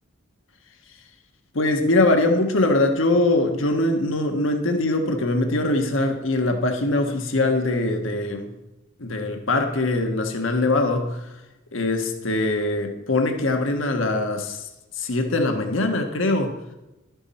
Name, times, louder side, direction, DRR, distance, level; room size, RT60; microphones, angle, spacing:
voice 1, 1.5-8.5 9.0-11.3 11.7-16.5, left 2 dB, 85° left, 4 dB, 1.3 m, -22 dB
12.0 x 9.7 x 4.3 m, 1.0 s
head